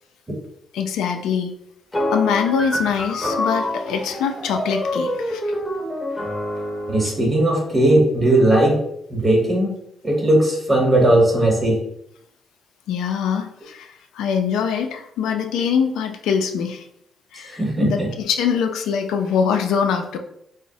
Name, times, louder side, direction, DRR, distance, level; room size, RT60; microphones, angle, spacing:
voice 1, 0.7-1.5 2.1-5.5 7.0-7.1 12.9-16.9 17.3-20.2, left 7 dB, 85° left, 5 dB, 0.3 m, -23 dB
sound 1, 1.9-7.1, left 1 dB, 15° left, 0.7 m, -26 dB
voice 2, 6.9-8.8 9.1-9.7 10.0-11.8 17.6-18.1, right 1 dB, 20° right, -1 dB, 1.0 m, -17 dB
3.8 x 2.0 x 2.6 m, 0.74 s
cardioid pair, 90°, 0 cm